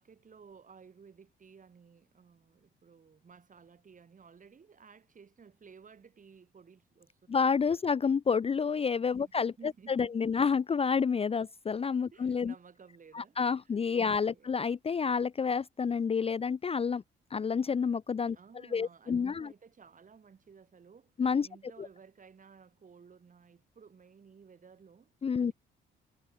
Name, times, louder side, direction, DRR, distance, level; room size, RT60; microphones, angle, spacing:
voice 1, 0.0-7.4 9.2-9.3 9.6-10.4 12.1-13.4 14.0-14.5 18.3-21.1 21.4-25.1 25.4-25.5, right 6 dB, 40° right, 5.9 m, -56 dB
voice 2, 7.3-12.5 13.1-17.0 17.3-18.4 18.7-19.5 21.2-21.5 21.8-21.9 25.2-25.5, left 6 dB, 30° left, 0.6 m, -29 dB
cardioid pair, 90°, 20 cm